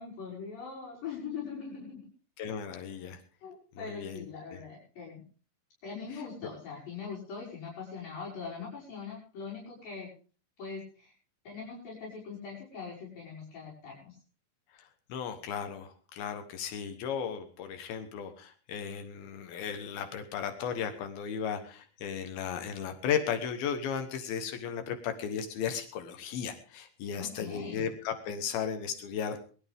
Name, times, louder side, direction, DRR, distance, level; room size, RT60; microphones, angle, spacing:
voice 1, 0.0-2.1 3.4-5.2 5.8-10.1 10.6-11.1 11.4-14.1 27.2-27.9, left 5 dB, 70° left, -6 dB, 7.5 m, -42 dB
voice 2, 2.4-3.2 3.8-4.2 15.1-29.4, left 7 dB, 85° left, 7 dB, 3.2 m, -35 dB
21.0 x 13.0 x 3.6 m, 0.39 s
omnidirectional pair, 4.2 m